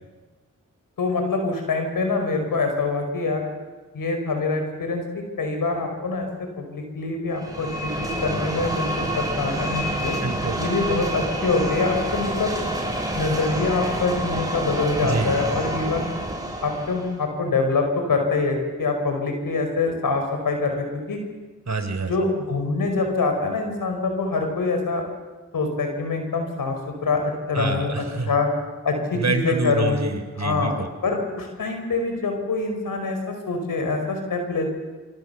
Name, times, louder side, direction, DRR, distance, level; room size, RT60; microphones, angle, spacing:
voice 1, 1.0-3.4 3.9-5.0 5.4-6.3 6.6-10.2 10.6-12.5 13.1-16.1 16.6-21.2 22.1-25.0 25.5-28.5 28.8-30.0 30.4-30.7 31.0-34.7, left 3 dB, 90° left, 4 dB, 5.5 m, -25 dB
sound 1, 7.3-17.2, right 1 dB, 10° right, 6.6 m, -28 dB
voice 2, 10.2-10.7 15.0-15.5 21.7-22.2 27.5-28.4 29.1-30.9, right 3 dB, 55° right, 8 dB, 3.8 m, -27 dB
27.5 x 25.0 x 7.1 m, 1.3 s
cardioid pair, 45°, 32 cm